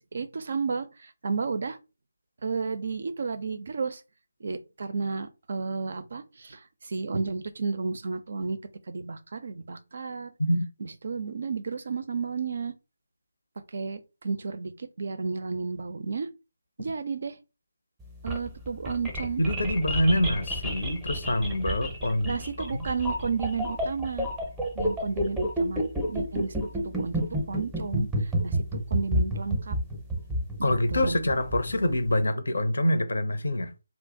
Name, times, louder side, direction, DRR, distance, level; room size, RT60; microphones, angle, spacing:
voice 1, 0.1-1.8 2.4-4.0 4.4-8.6 8.9-10.3 10.8-12.7 13.7-14.7 15.0-16.3 16.8-17.4 18.2-19.4 20.1-20.2 22.2-24.3 24.7-27.2 27.5-28.1 28.4-28.6 28.9-29.8 30.6-31.1, right 4 dB, 50° right, 0.4 m, -32 dB
sound 1, 18.0-32.1, equal, 5° right, 0.6 m, -30 dB
voice 2, 19.4-22.7 30.6-33.7, left 1 dB, 65° left, 0.6 m, -26 dB
2.3 x 2.0 x 3.8 m
figure-of-eight pair, 150°, 0 cm